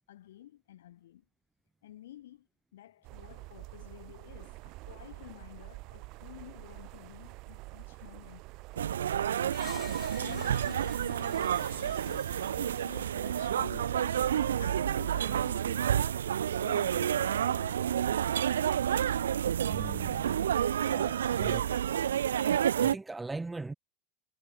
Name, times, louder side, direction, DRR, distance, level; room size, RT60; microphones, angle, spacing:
voice 1, 0.1-1.2 1.8-2.5 2.7-8.5 9.5-15.9 16.6-17.9, left 13 dB, 80° left, 4.7 m, -51 dB
sound 1, 3.0-15.5, right 23 dB, 55° right, 4.8 m, -48 dB
sound 2, 8.8-22.9, right 9 dB, 90° right, 0.3 m, -29 dB
Screech, 9.5-13.5, left 9 dB, 35° left, 3.4 m, -51 dB
voice 2, 19.7-20.4 20.8-21.7 22.8-23.7, right 3 dB, 10° right, 1.2 m, -40 dB
hypercardioid pair, 100°, 0 cm